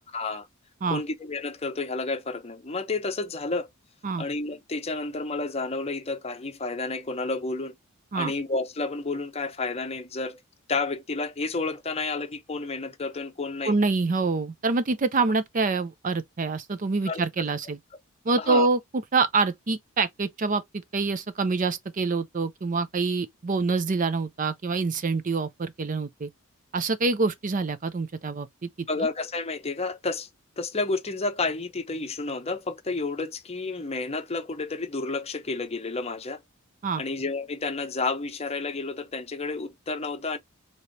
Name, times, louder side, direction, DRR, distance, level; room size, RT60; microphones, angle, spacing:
voice 1, 0.1-0.5 0.9-3.7 4.2-7.8 8.1-10.4 10.7-13.7 17.1-17.2 18.4-18.7 28.9-30.3 30.6-36.4 37.0-40.4, left 3 dB, 30° left, 0.7 m, -30 dB
voice 2, 13.6-17.8 18.2-26.3 26.7-28.7 36.8-37.0, right 3 dB, 35° right, 0.5 m, -26 dB
4.9 x 2.9 x 2.7 m
head